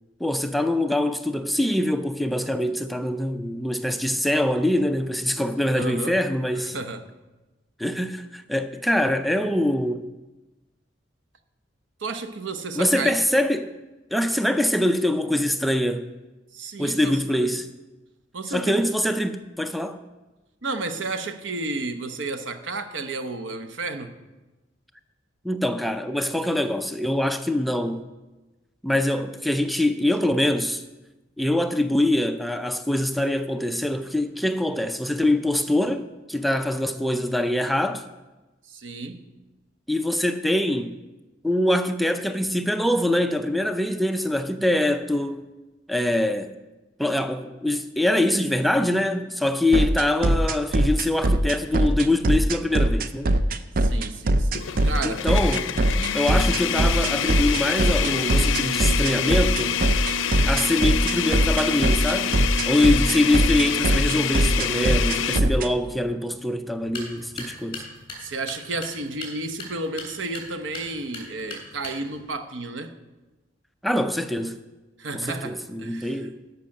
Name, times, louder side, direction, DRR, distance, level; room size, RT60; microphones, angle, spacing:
voice 1, 0.2-6.8 7.8-10.1 12.7-13.7 14.1-16.1 16.8-17.7 18.5-20.0 25.4-28.1 28.8-30.8 31.4-38.0 39.9-41.0 41.4-45.5 45.9-46.5 47.0-53.4 55.0-55.7 56.1-59.8 60.4-62.3 62.7-67.9 73.8-74.6 75.1-76.4, left 1 dB, ahead, 0.4 m, -24 dB
voice 2, 5.7-6.2 6.5-7.1 12.0-13.2 16.5-17.5 18.3-18.9 20.6-24.1 38.7-39.2 53.8-55.3 68.2-72.9 75.0-76.3, right 3 dB, 85° right, 0.9 m, -32 dB
sound 1, 49.7-65.7, right 1 dB, 50° right, 0.5 m, -21 dB
sound 2, 51.8-52.0 52.5-52.6 54.5-65.4, left 7 dB, 90° left, 0.5 m, -26 dB
sound 3, 66.8-72.3, left 3 dB, 25° left, 3.2 m, -40 dB
13.0 x 5.7 x 6.5 m
head